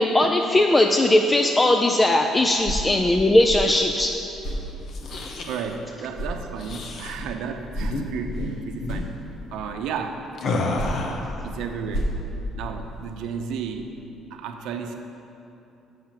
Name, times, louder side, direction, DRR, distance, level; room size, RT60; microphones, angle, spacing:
voice 1, 0.0-4.1, left 1 dB, 15° left, 4 dB, 0.4 m, -19 dB
sound 1, 2.4-5.8 6.1-9.7 10.5-13.1, equal, 70° left, 2.1 m, -33 dB
sound 2, 4.8-5.7 6.6-7.2 7.8-8.0 8.3-8.5 8.8-9.1 10.4-11.3, left 2 dB, 50° left, 0.9 m, -29 dB
voice 2, 5.4-9.1 9.5-10.2 11.4-12.1 12.5-13.9 14.3-14.9, right 6 dB, 80° right, 4 dB, 0.7 m, -33 dB
7.4 x 5.7 x 7.4 m, 2.9 s
cardioid pair, 125°, 0 cm